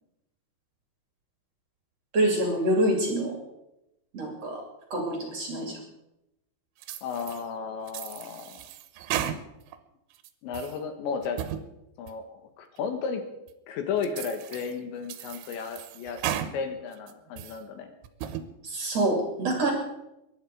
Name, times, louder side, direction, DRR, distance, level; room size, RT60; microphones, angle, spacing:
voice 1, 2.1-3.4 4.1-4.6 4.9-5.8 18.6-19.7, right 1 dB, 40° right, 1 dB, 3.3 m, -26 dB
sound 1, 6.8-7.4 7.9-9.8 10.2-10.8 11.2-11.6 12.1-12.2 12.8-12.9 13.5-13.6 14.0-14.7 15.1-16.5 16.9-17.6 18.0-18.5, right 10 dB, 85° right, 3.3 m, -35 dB
voice 2, 7.0-8.6 10.4-11.4 12.0-13.2 13.7-16.2 16.5-17.9, left 5 dB, 75° left, 7 dB, 3.7 m, -33 dB
23.0 x 11.0 x 4.9 m, 0.88 s
omnidirectional pair, 5.3 m